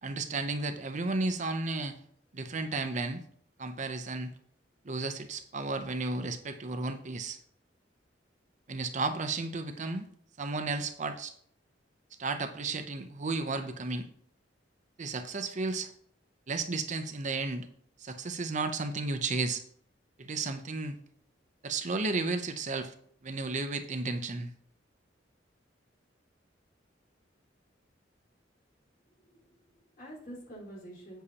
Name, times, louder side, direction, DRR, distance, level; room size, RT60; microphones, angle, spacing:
voice 1, 0.0-1.9 2.3-3.2 3.6-4.3 4.8-7.4 8.7-10.1 10.4-11.3 12.2-14.1 15.0-15.9 16.5-17.7 18.0-19.6 20.2-21.0 21.6-22.9 23.2-24.5, right 3 dB, 40° right, 8 dB, 0.7 m, -33 dB
voice 2, 29.1-31.2, right 1 dB, 50° left, -5 dB, 4.1 m, -48 dB
10.0 x 8.2 x 2.9 m, 0.62 s
head